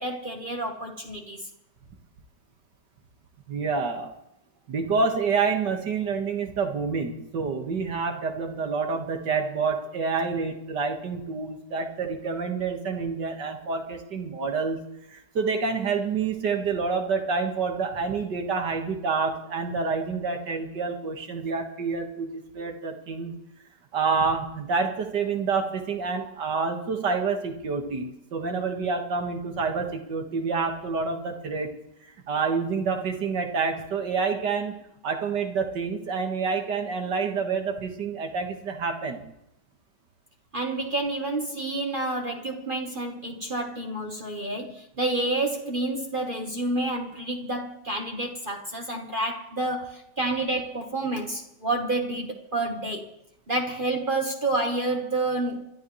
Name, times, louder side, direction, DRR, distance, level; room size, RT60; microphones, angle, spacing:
voice 1, 0.0-1.4 40.5-53.1 53.5-55.6, right 2 dB, 35° right, 2 dB, 1.2 m, -29 dB
voice 2, 3.5-4.1 4.7-14.8 15.1-23.3 23.9-31.7 32.3-34.8 35.0-39.2, right 5 dB, 75° right, 3 dB, 2.3 m, -28 dB
26.0 x 12.5 x 3.2 m, 0.82 s
omnidirectional pair, 1.9 m